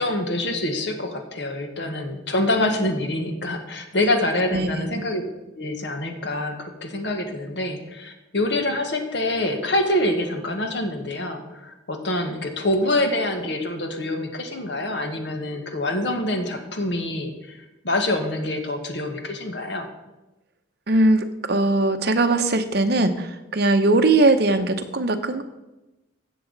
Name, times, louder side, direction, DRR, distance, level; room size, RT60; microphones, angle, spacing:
voice 1, 0.0-5.2 5.6-19.9, left 1 dB, 60° left, 5 dB, 1.3 m, -26 dB
voice 2, 4.5-4.9 20.9-25.4, right 2 dB, 55° right, 7 dB, 0.7 m, -20 dB
15.0 x 7.0 x 3.9 m, 1.0 s
head